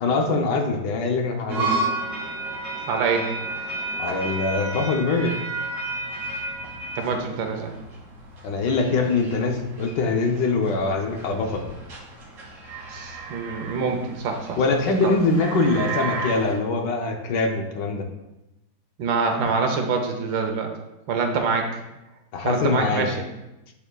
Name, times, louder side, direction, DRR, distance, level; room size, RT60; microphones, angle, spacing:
voice 1, 0.0-1.7 4.0-5.3 8.4-11.7 14.6-18.1 22.3-23.1, left 3 dB, 70° left, 3 dB, 1.2 m, -23 dB
sound 1, 1.5-16.5, right 3 dB, 55° right, 2.3 m, -32 dB
voice 2, 2.9-3.3 7.0-7.7 12.9-14.6 15.0-15.1 19.0-20.7 21.1-21.7 22.4-23.2, right 4 dB, 80° right, 4 dB, 1.5 m, -25 dB
9.9 x 4.6 x 2.3 m, 0.95 s
omnidirectional pair, 2.2 m